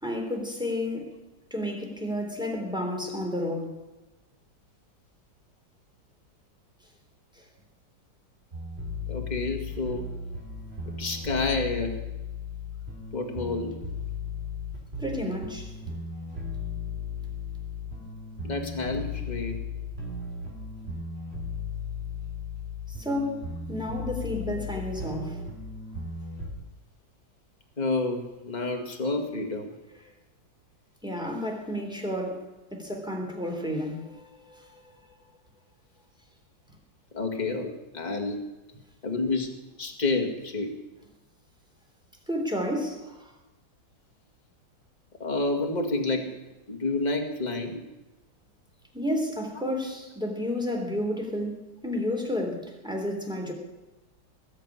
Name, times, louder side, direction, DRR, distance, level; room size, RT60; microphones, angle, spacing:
voice 1, 0.0-1.2 1.5-3.8 7.4-7.5 15.0-15.7 22.9-25.4 31.0-35.0 42.3-43.3 48.9-53.5, left 1 dB, ahead, 1 dB, 3.4 m, -31 dB
sound 1, 8.5-26.5, left 4 dB, 30° right, 3.5 m, -36 dB
voice 2, 9.1-10.1 10.9-12.0 13.1-13.8 18.4-19.6 27.8-29.7 37.1-38.4 39.0-40.7 45.2-46.3 46.7-47.8, left 3 dB, 20° left, 3 dB, 2.2 m, -29 dB
20.5 x 6.9 x 10.0 m, 1.1 s
omnidirectional pair, 2.0 m